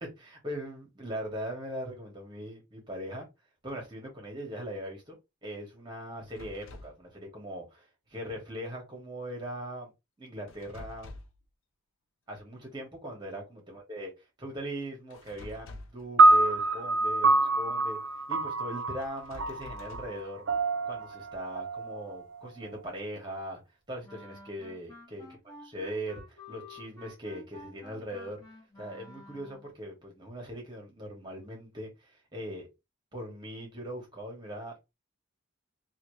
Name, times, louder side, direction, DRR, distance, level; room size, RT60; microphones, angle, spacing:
voice 1, 0.0-3.3 3.6-9.9 10.2-11.2 12.3-14.1 14.4-18.0 18.3-20.4 20.8-23.6 23.9-25.3 25.6-28.4 28.8-32.7 33.1-34.9, right 1 dB, 20° right, 1.5 m, -40 dB
sound 1, 6.3-7.0 10.5-11.4 15.1-16.1 19.0-20.2, left 2 dB, 80° left, 0.6 m, -47 dB
sound 2, 16.2-22.6, right 2 dB, 65° right, 0.5 m, -26 dB
Wind instrument woodwind instrument, 24.0-29.7, left 2 dB, 15° left, 1.6 m, -50 dB
3.2 x 2.7 x 3.2 m
head